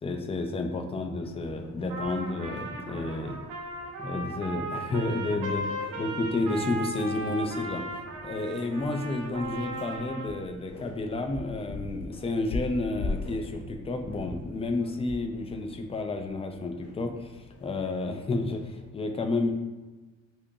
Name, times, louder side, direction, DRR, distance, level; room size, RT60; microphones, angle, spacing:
voice 1, 0.0-3.4 4.0-5.7 6.0-7.8 8.2-19.5, left 2 dB, 20° left, 5 dB, 0.4 m, -31 dB
sound 1, 1.2-18.9, left 2 dB, 50° left, 0.7 m, -43 dB
Trumpet, 1.9-10.4, right 1 dB, 90° right, 0.6 m, -37 dB
2.8 x 2.5 x 3.6 m, 1.2 s
cardioid pair, 90°, 30 cm